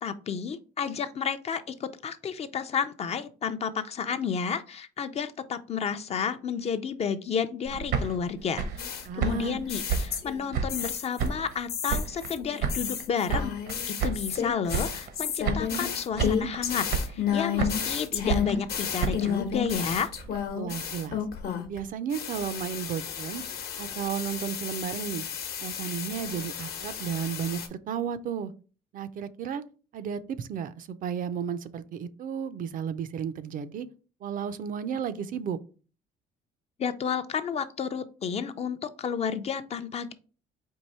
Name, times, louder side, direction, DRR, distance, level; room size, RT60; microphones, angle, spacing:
voice 1, 0.0-13.5 13.9-20.1 36.8-40.1, left 7 dB, 40° left, 10 dB, 0.5 m, -31 dB
sound 1, 7.6-10.9 11.2-12.3 12.6-14.4 14.7-15.2 15.4-16.6 16.9-17.9 18.3-20.5, right 5 dB, 75° right, 0.9 m, -31 dB
sound 2, 8.8-11.3 11.7-21.8 22.1-27.7, left 8 dB, 70° left, 1.0 m, -32 dB
voice 2, 9.0-9.6 20.5-21.2 21.7-23.4 23.8-25.3 25.6-28.5 28.9-29.6 29.9-33.9 34.2-35.6, right 8 dB, 55° right, 14 dB, 0.5 m, -33 dB
4.6 x 2.6 x 4.2 m, 0.36 s
cardioid pair, 110°, 17 cm